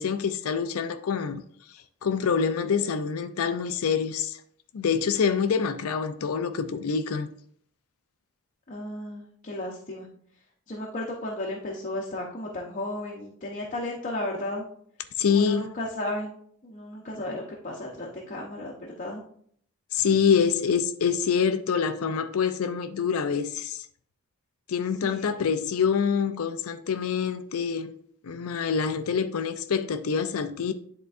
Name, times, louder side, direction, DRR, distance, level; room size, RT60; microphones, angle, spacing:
voice 1, 0.0-1.4 2.0-4.4 4.7-7.3 15.2-15.7 19.9-23.8 24.7-27.9 28.2-30.7, left 6 dB, 70° left, 0.5 m, -26 dB
voice 2, 8.7-10.1 10.7-14.6 15.3-16.3 16.6-19.2 25.0-25.3, left 1 dB, 35° left, 0.9 m, -34 dB
10.0 x 3.8 x 2.5 m
head